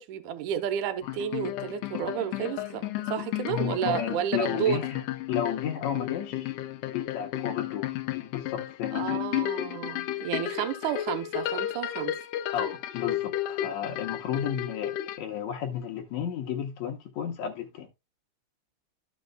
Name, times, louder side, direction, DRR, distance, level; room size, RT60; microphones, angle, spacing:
voice 1, 0.0-4.8 8.9-12.2, right 9 dB, 80° right, 2.3 m, -31 dB
sound 1, 1.0-15.2, left 13 dB, 90° left, 2.2 m, -33 dB
voice 2, 3.5-5.0 5.3-6.5 6.8-9.2 12.5-17.9, left 8 dB, 75° left, 2.1 m, -33 dB
13.5 x 5.2 x 2.2 m
omnidirectional pair, 3.5 m